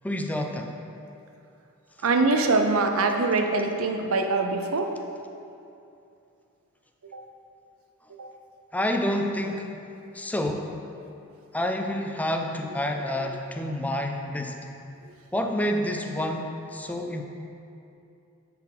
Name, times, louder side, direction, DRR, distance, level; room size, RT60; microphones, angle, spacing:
voice 1, 0.0-0.7 8.7-9.7 10.1-10.7 11.5-14.6 15.3-17.2, left 1 dB, 5° left, 3 dB, 0.4 m, -28 dB
voice 2, 2.0-4.9 7.1-7.2 8.2-8.3, right 3 dB, 80° right, 5 dB, 0.6 m, -23 dB
9.7 x 4.3 x 4.1 m, 2.7 s
head